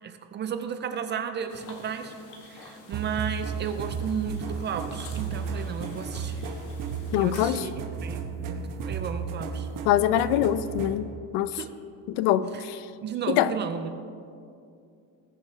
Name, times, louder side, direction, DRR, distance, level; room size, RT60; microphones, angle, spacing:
voice 1, 0.0-2.1 2.4-6.5 7.1-7.7 8.0-9.7 11.5-11.7 13.0-14.0, right 7 dB, 30° right, 8 dB, 0.4 m, -33 dB
sound 1, 1.5-7.7, left 3 dB, 45° left, 1.6 m, -48 dB
sound 2, 2.9-11.0, right 5 dB, 50° right, 1.1 m, -34 dB
voice 2, 7.1-7.7 9.8-11.5 12.1-12.9 13.3-13.5, left 12 dB, 70° left, 15 dB, 0.6 m, -24 dB
20.0 x 7.2 x 3.3 m, 2.5 s
cardioid pair, 165°, 41 cm